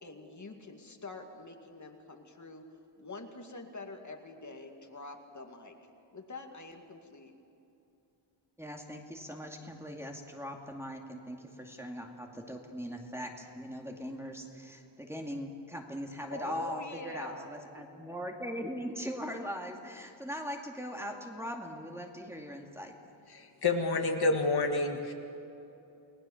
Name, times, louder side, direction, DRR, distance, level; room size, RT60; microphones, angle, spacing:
voice 1, 0.0-2.6 3.0-5.8 6.1-7.3 16.3-17.5 17.8-17.9, left 3 dB, 40° left, 4 dB, 2.3 m, -45 dB
voice 2, 8.6-23.0, equal, 5° right, 2 dB, 2.3 m, -40 dB
voice 3, 23.3-25.1, left 3 dB, 55° left, 3 dB, 2.0 m, -29 dB
29.5 x 19.5 x 7.3 m, 2.8 s
wide cardioid pair, 150°, 46 cm